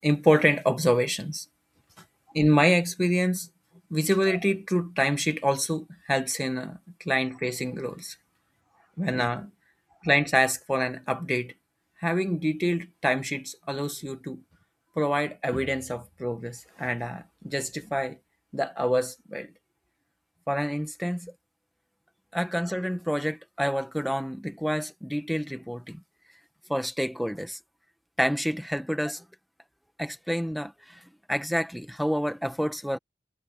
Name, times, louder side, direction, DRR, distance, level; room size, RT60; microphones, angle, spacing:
voice 1, 0.0-1.4 2.3-3.5 3.9-8.1 9.0-9.5 10.0-11.5 12.0-14.4 15.0-18.2 18.5-19.5 20.5-21.3 22.3-26.0 26.7-27.6 28.2-29.2 30.0-31.0 31.3-33.0, equal, ahead, 1.3 m, -27 dB
head